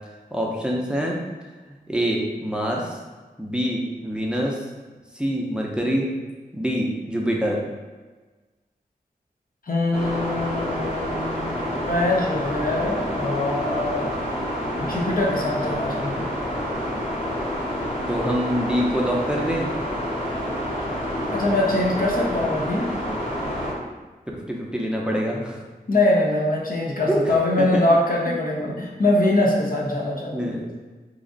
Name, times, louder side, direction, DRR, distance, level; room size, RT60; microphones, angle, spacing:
voice 1, 0.3-1.2 1.9-3.0 3.4-4.6 5.1-6.1 6.5-7.6 15.7-16.0 18.1-19.7 24.5-25.6 27.1-27.2 27.6-27.8 28.3-28.4 28.6-28.7 30.3-30.6, equal, 5° right, -2 dB, 0.5 m, -25 dB
voice 2, 9.6-11.5 11.9-14.1 14.8-16.2 21.3-22.9 25.9-30.5, left 1 dB, 60° left, -3 dB, 0.7 m, -23 dB
sound 1, 9.9-23.7, equal, 35° left, 1.0 m, -28 dB
3.1 x 2.4 x 3.8 m, 1.3 s
wide cardioid pair, 60°, 16 cm